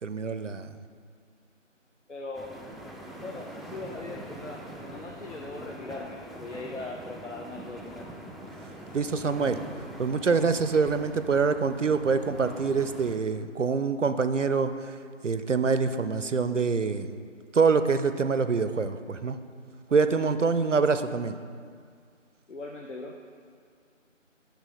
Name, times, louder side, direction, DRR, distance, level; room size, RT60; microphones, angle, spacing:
voice 1, 0.0-0.7 8.9-9.6 10.0-15.0 15.2-17.2 17.5-19.4 19.9-21.4, right 5 dB, 70° right, 10 dB, 0.5 m, -25 dB
voice 2, 2.1-2.5 3.2-8.1 22.5-23.2, left 3 dB, 65° left, 1 dB, 0.7 m, -40 dB
sound 1, 2.3-13.2, right 1 dB, ahead, 0.4 m, -43 dB
8.2 x 6.0 x 4.2 m, 2.1 s
figure-of-eight pair, 175°, 38 cm